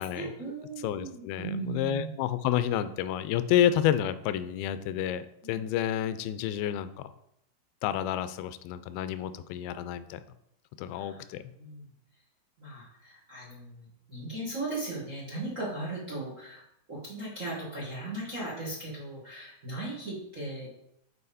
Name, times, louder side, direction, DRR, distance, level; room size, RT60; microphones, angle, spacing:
voice 1, 0.0-2.1 5.4-5.6 10.9-11.8 12.6-16.6 16.9-20.7, right 2 dB, 50° right, -5 dB, 0.9 m, -38 dB
voice 2, 0.8-7.1 7.8-10.2 10.8-11.4, left 10 dB, 85° left, 12 dB, 2.4 m, -29 dB
7.7 x 4.9 x 4.1 m, 0.76 s
omnidirectional pair, 4.3 m